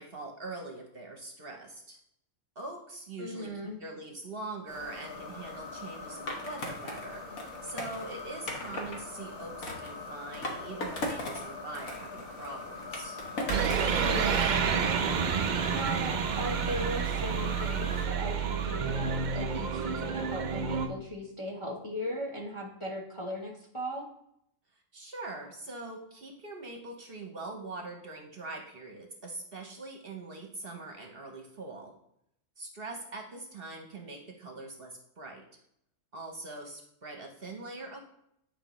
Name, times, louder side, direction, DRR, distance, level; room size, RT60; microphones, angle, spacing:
voice 1, 0.0-2.0 2.6-3.5 3.8-7.2 7.6-13.2 24.9-31.9 32.6-35.4 36.1-38.0, right 2 dB, 50° right, 3 dB, 0.9 m, -42 dB
voice 2, 3.2-3.8 14.0-14.7 15.7-24.1, equal, 25° left, 0 dB, 0.8 m, -37 dB
sound 1, 4.7-18.1, left 3 dB, 40° left, 2.3 m, -43 dB
Skateboard, 6.3-9.0 9.6-11.5 11.7-13.9, left 1 dB, 80° left, 1.5 m, -38 dB
sound 2, 13.5-20.9, right 6 dB, 85° right, 0.4 m, -29 dB
9.2 x 4.6 x 3.0 m, 0.75 s
omnidirectional pair, 1.4 m